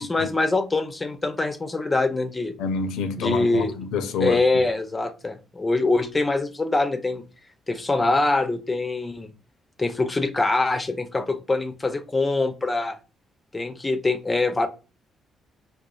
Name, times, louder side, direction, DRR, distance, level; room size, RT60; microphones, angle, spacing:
voice 1, 0.0-2.5 3.2-3.7 4.2-7.2 7.7-9.3 9.8-13.0 13.5-14.7, left 2 dB, 20° left, 0.5 m, -24 dB
voice 2, 2.6-4.6, left 5 dB, 90° left, 0.5 m, -28 dB
5.0 x 2.3 x 2.3 m
cardioid pair, 90°, 0 cm